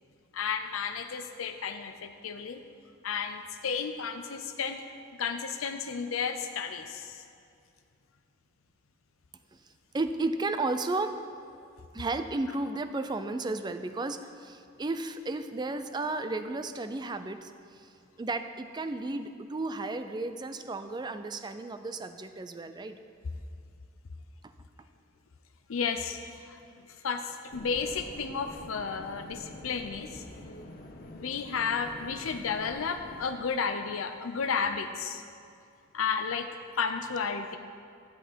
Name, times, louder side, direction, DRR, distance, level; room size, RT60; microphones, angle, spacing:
voice 1, 0.3-2.6 3.0-4.8 5.2-7.2 25.7-26.2 26.5-26.6 27.0-30.2 31.1-35.2 35.9-36.5 36.8-37.6, left 6 dB, 90° left, 7 dB, 0.5 m, -32 dB
voice 2, 9.9-11.6 11.9-17.9 18.2-23.0 24.4-24.5 26.7-26.8, right 2 dB, 20° right, 9 dB, 0.4 m, -33 dB
sound 1, 27.5-33.8, left 1 dB, 45° left, 0.8 m, -47 dB
13.0 x 8.1 x 4.5 m, 2.4 s
head